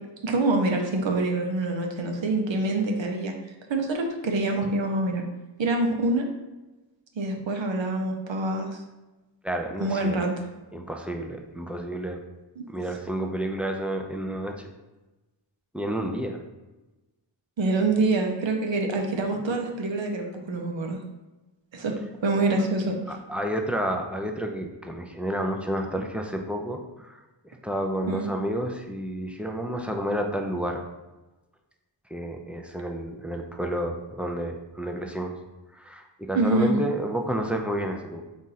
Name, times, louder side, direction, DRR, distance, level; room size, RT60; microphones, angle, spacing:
voice 1, 0.2-3.3 3.7-5.2 5.6-6.3 7.2-8.8 9.8-10.3 12.6-12.7 17.6-21.0 21.7-21.9 22.2-23.2 28.1-28.3 36.3-36.7, right 2 dB, 80° right, 3 dB, 0.7 m, -25 dB
voice 2, 9.4-10.2 10.7-12.2 12.7-14.6 15.7-16.4 23.1-30.8 32.1-35.4 35.7-38.2, right 1 dB, 5° right, 3 dB, 0.4 m, -30 dB
4.1 x 2.5 x 3.9 m, 1.1 s
wide cardioid pair, 65°, 44 cm